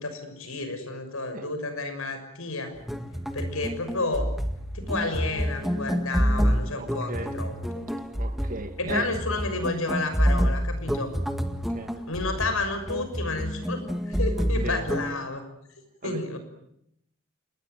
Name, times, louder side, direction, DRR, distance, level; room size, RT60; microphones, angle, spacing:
voice 1, 0.0-2.7 3.3-4.3 4.7-7.9 8.8-11.1 12.1-15.4 16.0-16.4, left 3 dB, 75° left, 6.4 m, -31 dB
sound 1, 2.8-15.1, equal, ahead, 1.8 m, -28 dB
voice 2, 6.8-7.4 8.2-9.1 11.7-11.9 14.6-14.8 16.0-16.3, right 2 dB, 40° right, 2.2 m, -37 dB
27.0 x 20.5 x 9.3 m
head